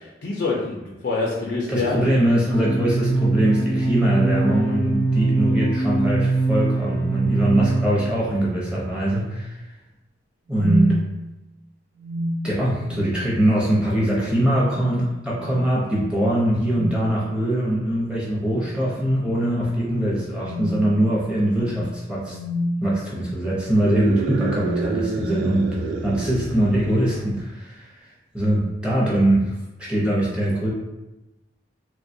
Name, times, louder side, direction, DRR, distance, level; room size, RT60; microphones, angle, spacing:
voice 1, 0.0-2.1, left 3 dB, 60° left, -3 dB, 0.4 m, -26 dB
voice 2, 1.7-9.5 10.5-10.9 12.4-22.4 22.8-25.7 26.0-27.9 28.3-29.5 29.8-30.7, right 1 dB, 5° right, -6 dB, 0.7 m, -22 dB
sound 1, 2.5-8.2, right 2 dB, 55° right, 1.0 m, -22 dB
sound 2, 7.0-7.2 7.7-7.8 8.4-8.9 10.5-11.0 12.0-13.2 13.6-13.9 14.5-15.0 15.3-15.6 16.6-17.1 18.3-18.8 19.2-19.4 20.2-22.8 23.7-23.9 24.4-25.4, equal, 40° right, 0.7 m, -30 dB
sound 3, 23.7-27.3, right 4 dB, 85° right, 0.3 m, -29 dB
3.1 x 2.2 x 2.6 m, 0.99 s
head